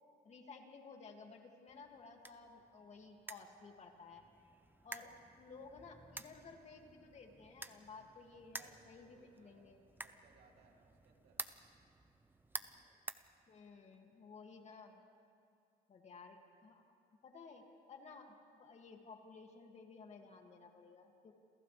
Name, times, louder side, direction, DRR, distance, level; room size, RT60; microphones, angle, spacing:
voice 1, 0.2-4.2 4.8-5.1 5.4-9.8 13.5-15.0 15.9-16.8 17.2-21.3, left 4 dB, 40° left, 2 dB, 2.4 m, -55 dB
sound 1, 1.7-14.0, right 2 dB, 10° right, 0.8 m, -52 dB
voice 2, 4.8-5.2 8.5-11.4, right 5 dB, 70° right, 1 dB, 2.8 m, -68 dB
29.0 x 28.0 x 3.4 m, 2.4 s
cardioid pair, 110°, 17 cm